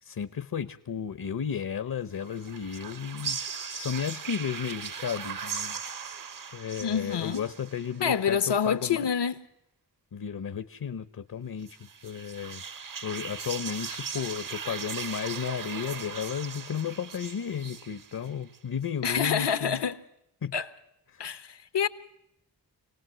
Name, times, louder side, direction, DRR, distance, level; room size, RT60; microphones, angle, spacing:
voice 1, 0.0-3.4 3.7-5.8 6.5-9.1 10.1-11.8 12.0-12.6 13.0-19.8 20.4-20.5 21.1-21.2, left 7 dB, 55° left, 0.9 m, -33 dB
sound 1, 2.1-8.1 11.6-18.6, right 6 dB, 50° right, 0.8 m, -38 dB
voice 2, 6.8-7.4 8.0-9.4 19.0-20.0 20.5-20.7 21.2-21.9, left 7 dB, 80° left, 1.2 m, -27 dB
27.0 x 18.5 x 7.7 m
wide cardioid pair, 65°, 41 cm